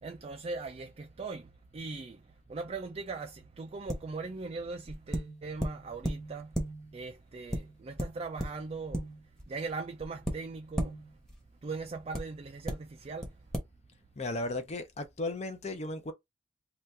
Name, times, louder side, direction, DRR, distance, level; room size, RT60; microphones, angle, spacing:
voice 1, 0.0-6.5 6.9-9.1 9.5-11.0 11.6-13.4, right 4 dB, 35° right, 0.4 m, -40 dB
sound 1, 3.9-4.3 4.9-7.1 7.5-9.6 10.0-11.4 12.1-12.2 12.7-12.8 13.2-13.3 13.5-13.6, right 1 dB, 5° left, 0.9 m, -36 dB
voice 2, 14.2-16.1, left 2 dB, 40° left, 0.5 m, -35 dB
2.8 x 2.4 x 3.3 m
head